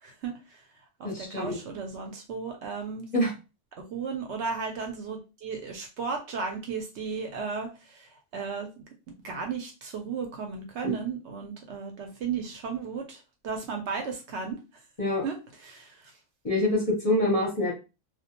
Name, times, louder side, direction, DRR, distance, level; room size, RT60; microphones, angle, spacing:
voice 1, 0.0-0.6 1.0-3.1 3.8-8.7 9.2-14.6 15.2-15.4 15.6-16.1, right 5 dB, 65° right, 3 dB, 0.8 m, -35 dB
voice 2, 1.0-1.6 3.1-3.3 10.8-10.9 15.0-15.2 16.4-17.7, left 1 dB, 35° left, -3 dB, 0.7 m, -25 dB
2.2 x 2.1 x 2.8 m, 0.29 s
omnidirectional pair, 1.3 m